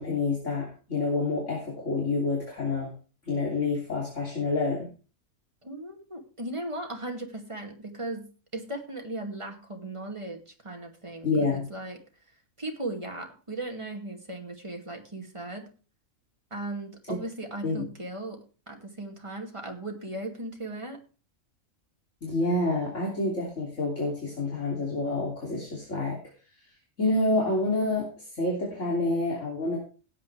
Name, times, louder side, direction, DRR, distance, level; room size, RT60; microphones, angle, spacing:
voice 1, 0.0-2.9 3.3-4.9 11.2-11.6 17.1-17.2 17.6-17.8 22.2-26.2 27.0-28.1 28.3-29.8, left 2 dB, 60° left, -3 dB, 3.3 m, -28 dB
voice 2, 5.6-12.0 12.6-15.7 16.5-21.0, right 2 dB, 20° right, 2 dB, 2.3 m, -37 dB
16.5 x 8.7 x 3.4 m, 0.35 s
omnidirectional pair, 1.4 m